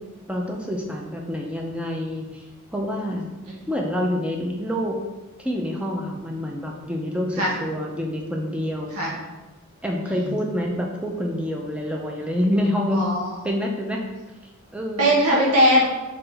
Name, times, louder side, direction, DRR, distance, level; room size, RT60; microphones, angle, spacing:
voice 1, 0.3-2.4 2.7-3.3 3.7-5.0 5.4-8.9 9.8-13.1 13.4-14.0 14.7-15.1, equal, 5° right, 0 dB, 0.5 m, -27 dB
voice 2, 12.9-13.3 15.0-15.9, equal, 80° right, -5 dB, 1.2 m, -20 dB
3.9 x 3.8 x 3.4 m, 1.1 s
head